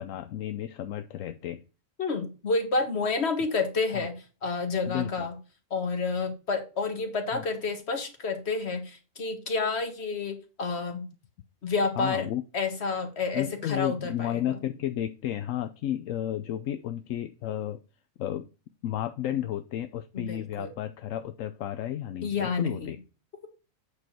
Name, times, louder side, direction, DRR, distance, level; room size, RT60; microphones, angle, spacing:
voice 1, 0.0-1.6 3.9-4.1 4.9-5.3 7.3-7.4 12.0-12.4 13.3-17.8 18.2-18.5 18.8-23.0, left 11 dB, 80° left, 10 dB, 1.0 m, -32 dB
voice 2, 2.0-5.4 5.7-11.1 11.6-12.3 12.5-14.4 20.1-20.7 22.2-23.0, left 4 dB, 55° left, 5 dB, 1.9 m, -29 dB
8.4 x 4.8 x 4.5 m, 0.33 s
omnidirectional pair, 1.4 m